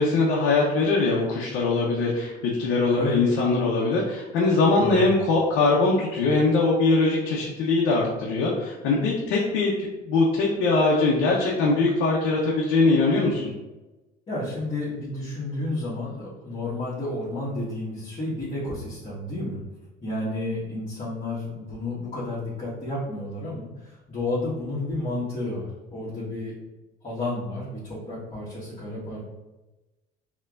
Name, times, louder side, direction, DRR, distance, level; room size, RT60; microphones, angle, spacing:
voice 1, 0.0-13.5, left 3 dB, 80° left, -3 dB, 0.8 m, -22 dB
voice 2, 14.3-19.6 20.0-26.5 27.0-29.2, left 2 dB, 30° left, -10 dB, 1.5 m, -31 dB
4.4 x 3.0 x 2.5 m, 1.1 s
cardioid pair, 115°, 21 cm